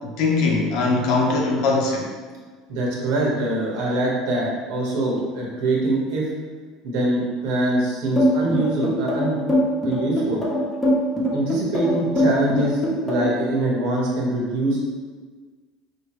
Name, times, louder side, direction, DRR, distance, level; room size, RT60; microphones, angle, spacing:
voice 1, 0.0-2.1, left 3 dB, 65° left, -1 dB, 0.9 m, -21 dB
voice 2, 2.7-6.3 6.8-9.4 9.8-10.4 11.3-14.8, right 1 dB, 75° right, -4 dB, 1.3 m, -23 dB
sound 1, 8.2-13.4, equal, 5° left, 1.1 m, -21 dB
4.9 x 2.9 x 3.1 m, 1.4 s
cardioid pair, 135°, 0 cm